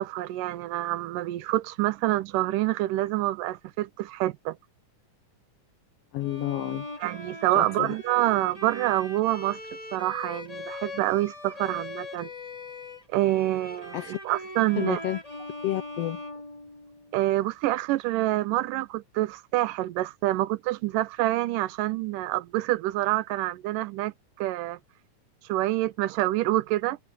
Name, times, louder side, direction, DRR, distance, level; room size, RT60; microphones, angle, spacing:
voice 1, 0.0-4.6 7.0-9.6 9.9-12.3 13.1-14.0 14.3-15.0 17.1-24.8 25.5-27.0, right 16 dB, 85° right, 2.4 m, -27 dB
voice 2, 6.1-6.9 7.5-7.9 13.9-14.1 14.8-15.2 15.6-16.2, left 14 dB, 90° left, 1.3 m, -30 dB
Bowed string instrument, 6.2-17.2, left 2 dB, 10° left, 2.4 m, -41 dB
omnidirectional pair, 3.7 m